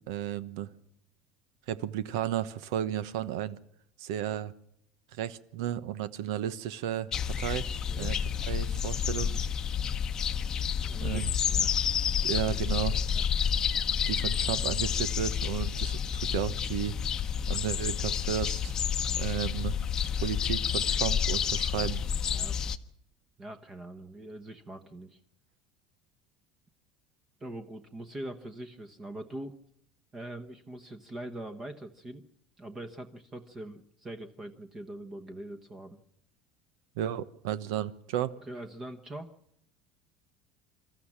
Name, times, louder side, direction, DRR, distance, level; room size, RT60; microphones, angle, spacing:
voice 1, 0.1-0.7 1.7-3.6 4.0-4.5 5.1-7.7 8.0-8.2 8.5-9.5 11.0-11.3 12.2-13.0 14.1-17.0 17.5-18.8 19.2-19.8 20.2-22.1 37.0-38.4, right 10 dB, 90° right, 16 dB, 1.1 m, -33 dB
sound 1, 7.1-22.8, left 8 dB, 25° left, 0.8 m, -29 dB
voice 2, 10.7-11.8 13.1-13.2 22.3-22.6 23.4-25.2 27.4-29.6 30.1-32.2 32.6-36.0 38.5-39.3, right 1 dB, 20° right, 8 dB, 1.1 m, -42 dB
26.0 x 13.5 x 7.4 m, 0.74 s
cardioid pair, 160°, 2 cm